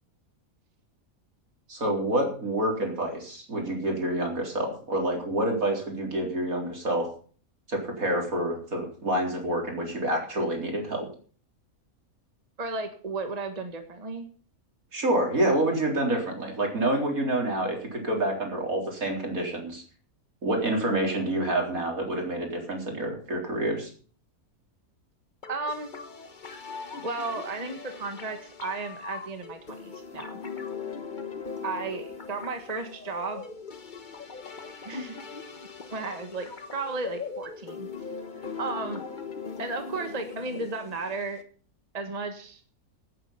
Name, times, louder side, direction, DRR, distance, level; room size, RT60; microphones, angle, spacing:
voice 1, 1.7-7.1 7.7-11.1 14.9-19.8 20.4-23.9, right 1 dB, 70° right, 1 dB, 4.3 m, -27 dB
voice 2, 12.6-14.2 25.5-25.9 27.0-30.4 31.6-33.4 34.8-35.2 35.9-38.0 38.3-39.0 39.6-41.4 41.9-42.6, right 3 dB, 25° right, 6 dB, 1.5 m, -34 dB
sound 1, 25.4-41.4, left 5 dB, 35° left, 1.3 m, -40 dB
16.5 x 8.9 x 5.7 m, 0.43 s
omnidirectional pair, 1.5 m